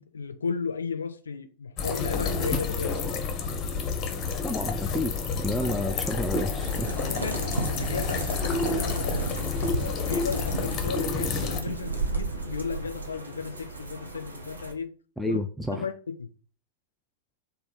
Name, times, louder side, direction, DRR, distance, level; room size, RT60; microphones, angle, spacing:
voice 1, 0.0-3.1 6.9-9.3 9.8-14.9 15.3-15.4 15.7-16.3, left 5 dB, 75° left, 0.4 m, -34 dB
sound 1, 1.8-11.6, left 4 dB, 30° left, 0.6 m, -29 dB
voice 2, 4.4-7.2 15.2-15.9, left 1 dB, ahead, 0.3 m, -31 dB
sound 2, 6.6-14.7, right 3 dB, 80° right, 0.7 m, -34 dB
3.3 x 2.1 x 4.0 m
figure-of-eight pair, 90°, 0 cm